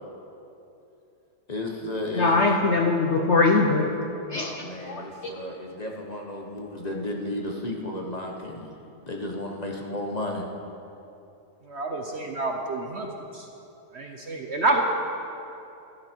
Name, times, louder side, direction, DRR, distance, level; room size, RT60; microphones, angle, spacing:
voice 1, 1.5-2.6 4.3-8.7 9.1-10.5, left 1 dB, 25° left, 0 dB, 1.1 m, -33 dB
voice 2, 2.1-3.9 4.3-4.5 4.9-5.3, left 3 dB, 55° left, 3 dB, 0.9 m, -22 dB
voice 3, 11.7-13.1 13.9-14.8, right 2 dB, 50° right, 2 dB, 1.0 m, -27 dB
15.5 x 12.0 x 4.6 m, 2.8 s
omnidirectional pair, 1.8 m